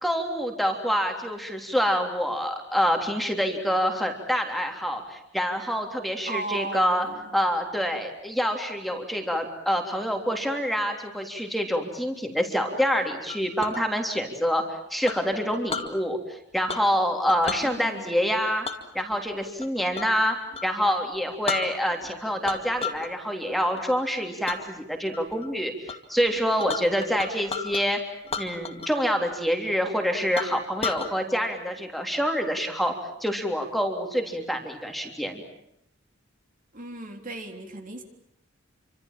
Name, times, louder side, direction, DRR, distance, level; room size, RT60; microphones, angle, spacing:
voice 1, 0.0-7.1 7.3-14.6 14.9-18.6 18.9-20.4 20.6-28.0 28.4-32.9 33.2-35.4, equal, ahead, 3 dB, 3.3 m, -26 dB
voice 2, 6.3-7.3 17.6-18.1 36.7-38.0, right 3 dB, 40° right, 4 dB, 3.6 m, -36 dB
Chink clink, 13.3-13.8 15.1-15.9 16.7-17.0 17.3-17.7 18.6-20.2 20.5-20.7 21.1-21.2 21.5-22.1 22.4-23.1 23.5-23.8 24.5-24.6 25.1-25.5 25.9-26.0 26.2-27.8 28.2-29.1 29.3-29.4 29.9-30.0 30.4-31.1, left 5 dB, 30° left, 2.2 m, -33 dB
29.0 x 25.5 x 7.5 m, 0.77 s
head